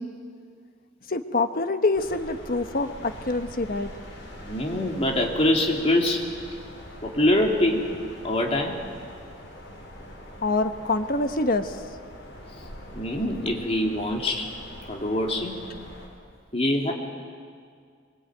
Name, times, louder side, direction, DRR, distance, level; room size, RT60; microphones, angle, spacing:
voice 1, 1.1-3.9 10.4-11.8, left 2 dB, 50° left, 8 dB, 1.2 m, -25 dB
sound 1, 1.9-16.1, equal, 70° left, 5.5 m, -43 dB
voice 2, 4.4-6.2 7.0-7.9 8.2-8.8 12.9-14.5 14.9-15.5 16.5-16.9, left 1 dB, 35° left, 0 dB, 3.2 m, -24 dB
25.5 x 23.0 x 9.0 m, 2.1 s
head